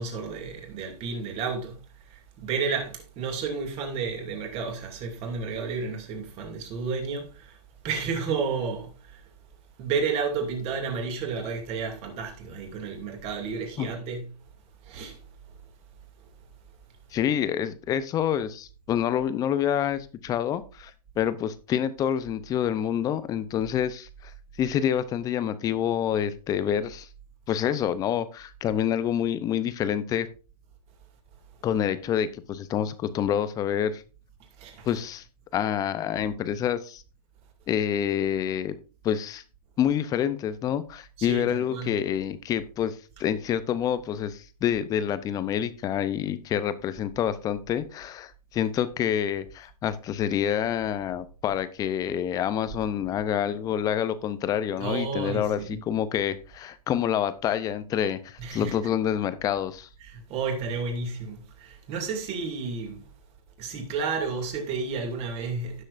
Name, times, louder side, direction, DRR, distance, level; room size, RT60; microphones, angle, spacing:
voice 1, 0.0-7.6 7.8-9.2 9.8-14.4 14.8-15.3 34.6-35.0 41.2-41.9 51.4-51.6 54.8-55.8 58.4-58.9 60.0-63.1 63.6-65.8, right 5 dB, 30° right, 2.4 m, -32 dB
voice 2, 17.1-24.3 24.6-27.1 27.5-30.3 31.6-34.0 34.9-35.2 35.5-37.0 37.7-38.7 39.0-39.4 39.8-59.9, left 9 dB, 15° left, 0.6 m, -27 dB
16.5 x 6.4 x 2.5 m
hypercardioid pair, 140°, 21 cm